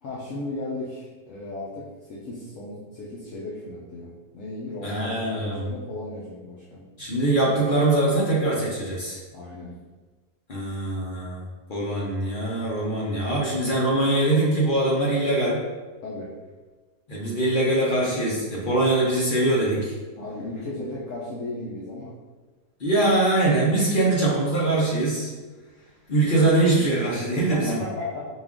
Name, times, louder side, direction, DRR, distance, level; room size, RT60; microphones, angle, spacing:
voice 1, 0.0-6.9 9.3-9.7 16.0-16.3 20.2-22.2 27.4-28.3, left 2 dB, 65° left, -6 dB, 1.0 m, -35 dB
voice 2, 4.8-5.7 7.0-9.2 10.5-15.6 17.1-19.9 22.8-25.3 26.1-27.8, right 2 dB, 50° left, -5 dB, 0.7 m, -23 dB
4.2 x 2.4 x 3.6 m, 1.3 s
omnidirectional pair, 1.6 m